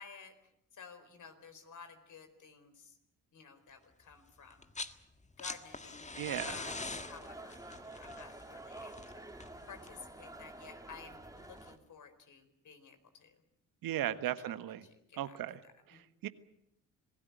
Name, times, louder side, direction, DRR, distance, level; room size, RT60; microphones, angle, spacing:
voice 1, 0.0-3.0 3.3-4.7 5.4-6.1 6.4-7.6 7.9-9.2 9.7-13.4 14.0-14.2 14.5-14.6 14.8-15.4 15.6-16.1, left 6 dB, 55° left, 8 dB, 4.5 m, -53 dB
sound 1, 4.5-5.0 5.2-10.1 11.4-11.5, left 3 dB, 20° left, 1.7 m, -44 dB
voice 2, 6.2-6.6 13.8-14.8 15.2-15.6 15.9-16.3, right 12 dB, 70° right, 12 dB, 1.5 m, -37 dB
sound 2, 6.6-11.8, right 2 dB, 10° right, 2.9 m, -49 dB
26.5 x 17.5 x 9.4 m, 0.80 s
supercardioid pair, 55°, 35 cm